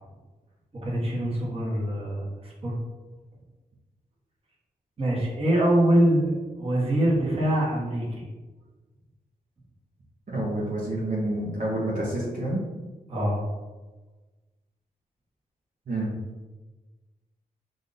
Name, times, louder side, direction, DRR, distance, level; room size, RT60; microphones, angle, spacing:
voice 1, 0.7-2.8 5.0-6.3 6.6-8.3 13.1-13.5, right 1 dB, 40° right, -4 dB, 1.4 m, -24 dB
voice 2, 10.3-12.6 15.9-16.2, right 1 dB, 60° right, -6 dB, 1.1 m, -28 dB
5.0 x 2.6 x 3.9 m, 1.2 s
wide cardioid pair, 120°, 15 cm